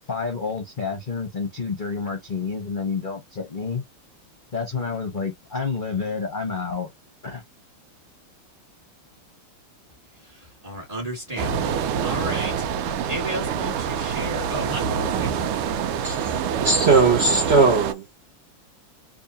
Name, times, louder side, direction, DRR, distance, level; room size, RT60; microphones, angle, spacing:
voice 1, 0.1-3.8 4.5-6.9 7.2-7.4, left 5 dB, 35° left, 0.8 m, -29 dB
voice 2, 10.3-12.7 13.1-15.7, equal, 20° right, 1.8 m, -33 dB
sound 1, 11.4-17.9, right 7 dB, 90° right, 1.6 m, -26 dB
voice 3, 16.6-18.0, right 4 dB, 70° right, 0.6 m, -18 dB
3.5 x 3.0 x 2.8 m
omnidirectional pair, 2.4 m